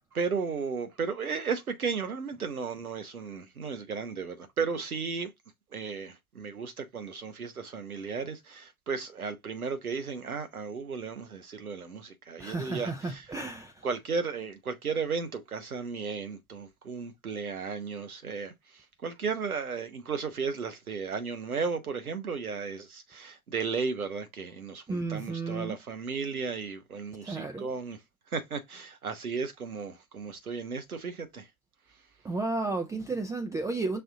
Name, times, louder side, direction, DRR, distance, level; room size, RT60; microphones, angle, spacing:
voice 1, 0.1-5.3 5.7-13.2 13.8-28.0 28.3-31.5, right 5 dB, 85° right, 0.9 m, -34 dB
voice 2, 12.4-13.9 24.9-25.8 27.2-27.7 32.2-34.0, right 3 dB, 10° right, 0.4 m, -33 dB
5.6 x 2.6 x 3.5 m
figure-of-eight pair, 80°, 42 cm